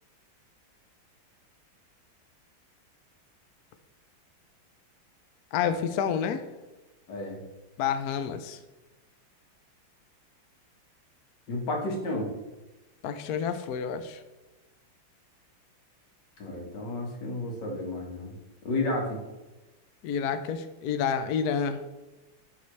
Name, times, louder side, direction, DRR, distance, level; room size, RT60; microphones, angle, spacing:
voice 1, 5.5-6.4 7.8-8.6 13.0-14.2 20.0-22.0, left 7 dB, 80° left, 9 dB, 0.8 m, -29 dB
voice 2, 7.1-7.4 11.5-12.3 16.4-18.3 18.6-19.2, left 2 dB, 60° left, 0 dB, 2.0 m, -32 dB
11.0 x 4.2 x 3.2 m, 1.1 s
omnidirectional pair, 2.2 m